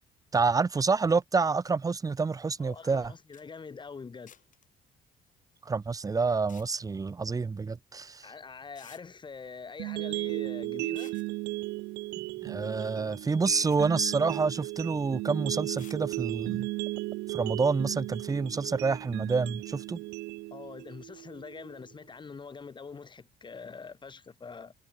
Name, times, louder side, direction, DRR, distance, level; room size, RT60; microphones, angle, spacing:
voice 1, 0.3-3.1 5.6-8.3 12.4-16.7 17.3-20.0, right 4 dB, 20° right, 0.8 m, -28 dB
voice 2, 2.6-4.3 8.2-11.2 20.5-24.7, left 5 dB, 30° left, 2.8 m, -44 dB
sound 1, 3.1-3.2 3.3-3.4 4.3-4.7 6.3-6.7 8.1-8.2 8.8-9.0 10.8-11.3 12.8-12.9 13.4-13.8 15.8-16.0, left 9 dB, 50° left, 4.1 m, -54 dB
sound 2, 9.8-21.8, right 22 dB, 90° right, 0.5 m, -36 dB
cardioid pair, 110°, 17 cm